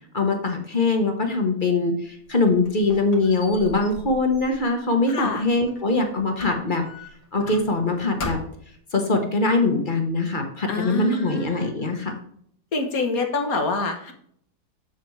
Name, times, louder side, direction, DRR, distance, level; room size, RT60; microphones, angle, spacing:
voice 1, 0.1-6.8 7.3-8.4 8.9-12.1, left 3 dB, 35° left, 4 dB, 1.3 m, -22 dB
Squeak, 2.1-5.9 6.4-7.9 8.2-8.8, left 3 dB, 85° left, 2.2 m, -39 dB
voice 2, 5.1-5.4 10.7-11.9 12.7-14.1, left 3 dB, 60° left, 4 dB, 1.7 m, -27 dB
7.8 x 7.1 x 3.3 m, 0.65 s
omnidirectional pair, 1.7 m